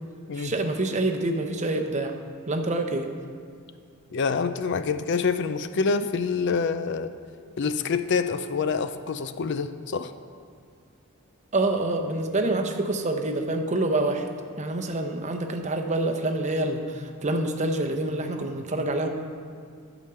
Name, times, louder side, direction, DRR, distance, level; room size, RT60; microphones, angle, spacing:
voice 1, 0.4-2.2 2.5-3.1 11.5-14.3 14.6-19.1, right 2 dB, 30° right, 4 dB, 0.8 m, -26 dB
voice 2, 4.1-7.1 7.6-10.1, left 5 dB, 55° left, 11 dB, 0.4 m, -26 dB
11.5 x 5.0 x 6.8 m, 2.2 s
head